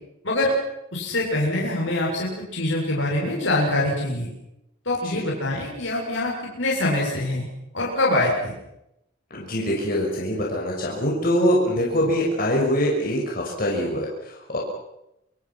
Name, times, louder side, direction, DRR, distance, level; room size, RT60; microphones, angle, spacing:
voice 1, 0.9-4.3 4.9-7.5 7.7-8.5, left 1 dB, 70° left, -3 dB, 7.2 m, -24 dB
voice 2, 9.3-14.6, equal, 45° left, -2 dB, 6.0 m, -24 dB
27.5 x 25.5 x 6.0 m, 0.84 s
head